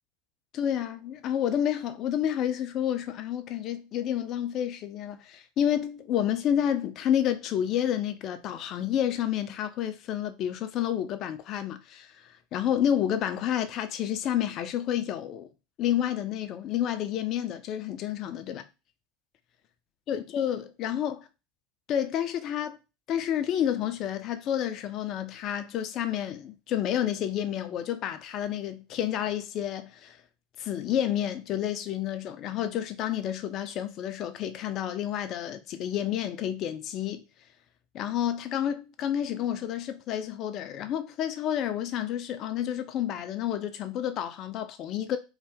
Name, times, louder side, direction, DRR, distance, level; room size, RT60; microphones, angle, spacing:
voice 1, 0.5-15.5 15.8-18.6 20.1-21.2 21.9-22.8 23.1-30.2 30.6-37.2 37.9-45.2, left 10 dB, 50° left, 0.5 m, -30 dB
2.7 x 2.2 x 3.4 m
hypercardioid pair, 95°, 0 cm